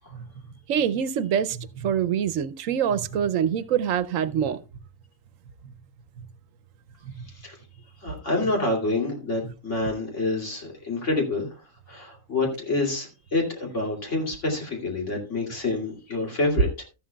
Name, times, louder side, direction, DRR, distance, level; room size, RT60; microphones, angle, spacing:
voice 1, 0.7-4.6, right 8 dB, 75° right, 1.0 m, -25 dB
voice 2, 8.0-11.5 11.9-16.8, left 2 dB, 60° left, 3.0 m, -27 dB
13.5 x 11.5 x 2.3 m
omnidirectional pair, 1.4 m